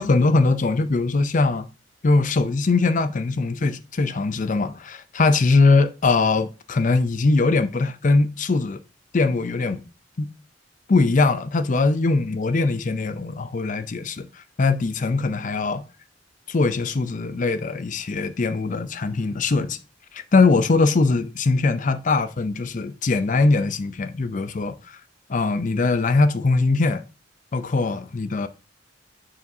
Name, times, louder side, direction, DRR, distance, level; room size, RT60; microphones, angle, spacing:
voice 1, 0.0-1.7 2.0-8.8 9.1-9.8 10.2-10.3 10.9-14.3 14.6-15.8 16.5-19.8 20.1-24.7 25.3-27.0 27.5-28.5, left 3 dB, 45° left, 0.5 m, -21 dB
9.3 x 5.0 x 2.7 m
head